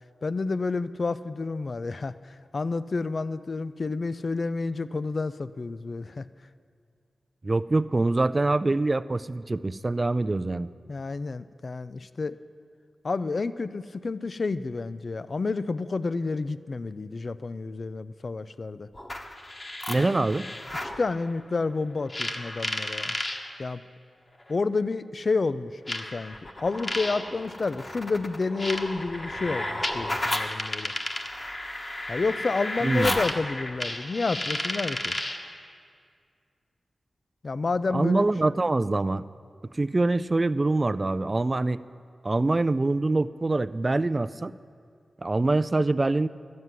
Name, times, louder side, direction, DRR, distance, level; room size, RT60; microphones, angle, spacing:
voice 1, 0.2-6.2 10.9-12.4 13.0-18.9 20.0-20.1 20.8-23.2 23.6-23.8 24.5-30.9 32.1-35.2 37.4-38.2, left 3 dB, 50° left, 14 dB, 0.4 m, -30 dB
voice 2, 7.4-10.7 19.9-20.5 32.8-33.2 37.9-39.2 39.7-41.8 42.2-44.5 45.2-46.3, right 2 dB, 35° right, 15 dB, 0.3 m, -24 dB
sound 1, 18.9-21.0 22.1-23.4 24.5-24.6 25.9-35.5, left 1 dB, 30° left, 1.1 m, -32 dB
12.5 x 9.5 x 7.5 m, 2.2 s
cardioid pair, 65°, 0 cm